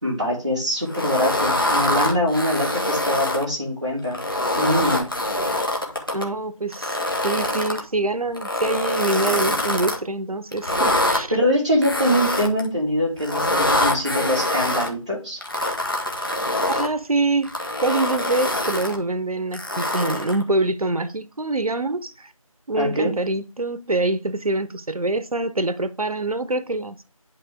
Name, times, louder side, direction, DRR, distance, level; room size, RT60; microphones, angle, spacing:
voice 1, 0.0-4.2 4.5-5.1 11.3-15.4 22.7-23.1, equal, 10° right, 2.2 m, -23 dB
sound 1, 0.9-3.4 4.0-6.2 6.7-7.8 8.3-10.0 10.5-11.2 11.8-12.7 13.2-14.9 15.4-16.9 17.4-19.0 19.5-20.4, left 1 dB, 40° left, 1.6 m, -24 dB
voice 2, 6.1-7.0 7.2-11.3 16.7-17.5 17.8-22.3 22.7-27.0, right 2 dB, 90° right, 0.7 m, -25 dB
11.0 x 4.2 x 3.5 m
figure-of-eight pair, 180°, 18 cm